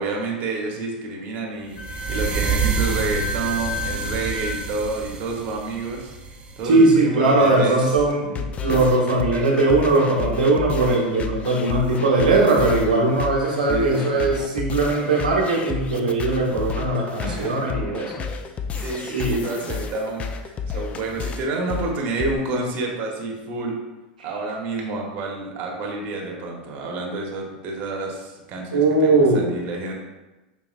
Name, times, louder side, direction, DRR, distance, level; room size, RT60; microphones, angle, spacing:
voice 1, 0.0-6.2 6.6-7.8 8.6-8.9 13.7-14.4 17.2-17.6 18.8-23.7 24.2-29.9, right 3 dB, 45° right, 0 dB, 1.0 m, -29 dB
Wind instrument woodwind instrument, 1.8-4.6, left 2 dB, 60° left, 0.7 m, -32 dB
sound 1, 1.8-6.8, right 5 dB, 25° right, 0.6 m, -28 dB
voice 2, 6.6-18.3 19.1-19.4 28.7-29.5, right 2 dB, 90° right, -3 dB, 1.0 m, -19 dB
sound 2, 8.0-22.4, left 5 dB, 30° left, 0.4 m, -31 dB
5.3 x 2.8 x 2.4 m, 1.1 s
hypercardioid pair, 95°, 4 cm